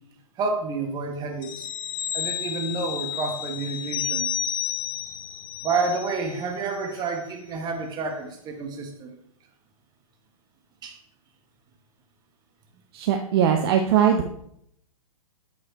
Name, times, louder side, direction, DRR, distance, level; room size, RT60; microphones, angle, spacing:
voice 1, 0.4-1.7 2.1-4.3 5.6-9.2 10.8-11.0, right 4 dB, 20° right, 4 dB, 1.0 m, -29 dB
sound 1, 1.4-6.5 6.9-7.0, left 9 dB, 25° left, 0.4 m, -31 dB
voice 2, 12.9-14.3, right 8 dB, 40° right, 4 dB, 0.6 m, -20 dB
8.3 x 3.2 x 4.1 m, 0.72 s
figure-of-eight pair, 115°, 19 cm